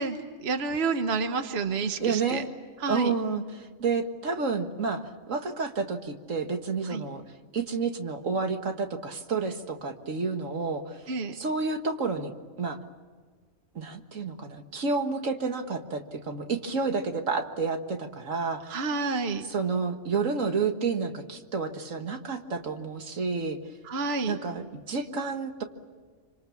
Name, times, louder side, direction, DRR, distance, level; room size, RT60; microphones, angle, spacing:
voice 1, 0.0-2.4 2.8-3.1 6.9-7.0 11.1-11.4 18.7-19.4 23.9-24.4, right 4 dB, 55° right, 7 dB, 1.4 m, -29 dB
voice 2, 2.0-2.5 2.9-7.2 7.5-11.0 11.3-12.3 12.6-12.8 13.8-18.9 19.5-23.6 24.3-25.6, right 4 dB, 75° right, 6 dB, 2.0 m, -30 dB
27.0 x 26.0 x 7.2 m, 1.5 s
omnidirectional pair, 1.3 m